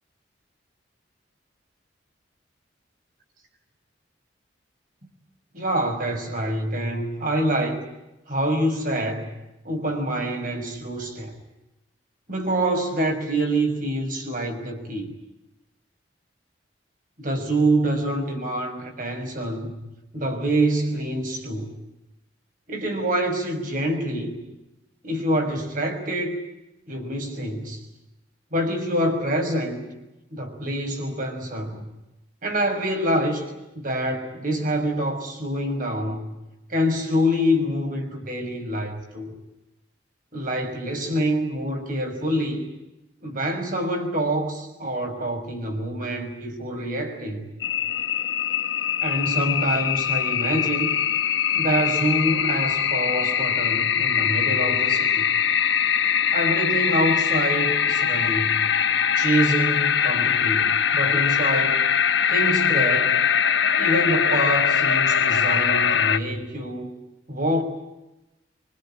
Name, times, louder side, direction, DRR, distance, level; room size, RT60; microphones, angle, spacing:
voice 1, 5.5-7.8 8.3-9.3 9.6-11.3 12.3-15.1 17.2-19.8 20.1-21.7 22.7-24.4 25.0-26.4 26.9-27.8 28.5-29.8 30.3-31.9 32.4-33.5 33.7-36.3 36.7-39.3 40.3-42.7 43.2-47.5 49.0-51.0 51.5-55.3 56.3-58.7 59.2-61.8 62.3-63.2 63.8-66.9 67.3-67.6, right 1 dB, 50° right, 4 dB, 6.2 m, -26 dB
sound 1, 47.6-66.2, left 8 dB, 75° left, 1.2 m, -22 dB
25.5 x 24.5 x 8.9 m, 0.96 s
head